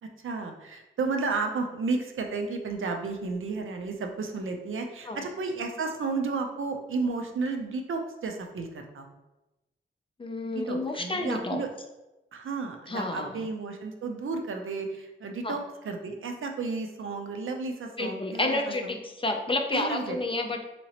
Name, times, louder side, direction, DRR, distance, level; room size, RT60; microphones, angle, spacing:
voice 1, 0.0-9.1 10.4-11.7 12.3-19.0 19.7-20.2, right 4 dB, 80° right, 4 dB, 0.5 m, -32 dB
voice 2, 10.2-11.6 12.9-13.3 15.4-15.6 18.0-20.6, left 2 dB, 25° left, 3 dB, 0.4 m, -30 dB
3.8 x 2.9 x 2.8 m, 0.99 s
wide cardioid pair, 140°, 21 cm